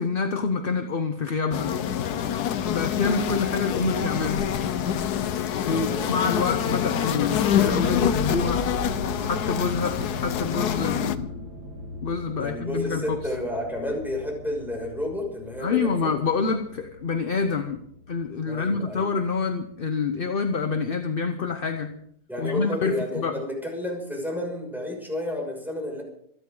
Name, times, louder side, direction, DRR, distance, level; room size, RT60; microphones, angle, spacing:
voice 1, 0.0-1.7 2.7-4.5 5.7-8.7 9.2-11.5 12.0-13.2 15.6-17.8 18.1-22.0 22.4-23.4, left 5 dB, 40° left, 7 dB, 0.8 m, -27 dB
sound 1, 1.5-11.2, left 9 dB, 70° left, 1.3 m, -26 dB
voice 2, 5.7-6.1 12.3-16.1 18.4-19.1 22.3-26.0, left 1 dB, ahead, -1 dB, 6.2 m, -31 dB
sound 2, 7.6-19.9 20.5-20.9 21.5-21.6 21.9-22.0, equal, 70° right, 2.4 m, -39 dB
26.0 x 11.0 x 3.8 m, 0.68 s
omnidirectional pair, 1.8 m